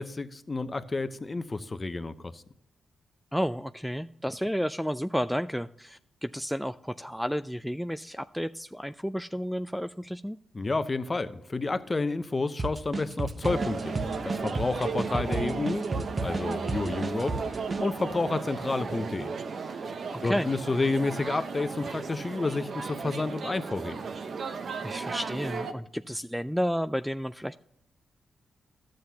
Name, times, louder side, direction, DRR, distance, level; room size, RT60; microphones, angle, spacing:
voice 1, 0.0-2.4 10.5-15.8 16.2-17.4 17.8-19.3 20.2-24.1, left 3 dB, 35° left, 11 dB, 0.8 m, -30 dB
voice 2, 3.3-10.4 15.0-15.1 20.1-20.5 24.8-27.6, equal, ahead, 11 dB, 0.3 m, -31 dB
sound 1, 12.6-17.8, right 2 dB, 40° right, 1.0 m, -32 dB
sound 2, 13.4-25.7, right 5 dB, 65° right, 0.8 m, -35 dB
12.5 x 7.6 x 2.8 m, 0.73 s
cardioid pair, 60°, 0 cm